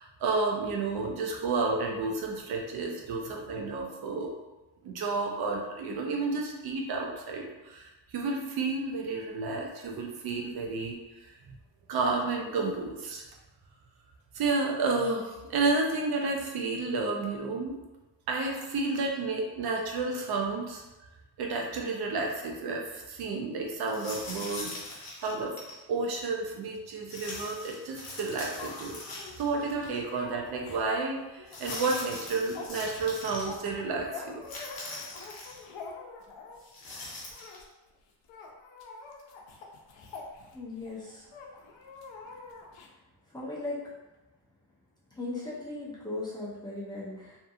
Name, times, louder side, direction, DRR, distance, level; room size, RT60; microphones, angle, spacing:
voice 1, 0.0-4.3 4.8-11.3 11.9-13.2 14.3-17.8 18.3-20.8 21.4-25.5 25.9-34.4, right 3 dB, 60° right, 1 dB, 0.5 m, -31 dB
sound 1, 23.9-25.8 27.1-29.6 29.9-30.0 31.5-33.5 34.4-35.6 36.6-37.6, left 2 dB, 50° left, 0.8 m, -42 dB
sound 2, 28.3-36.7 37.3-37.6 37.9-38.0 38.2-40.9 41.3-42.9, left 4 dB, 85° left, 0.6 m, -46 dB
voice 2, 40.5-41.3 43.3-43.8 45.1-47.4, left 2 dB, 10° left, -8 dB, 0.5 m, -37 dB
2.6 x 2.6 x 2.3 m, 1.1 s
cardioid pair, 160°, 45 cm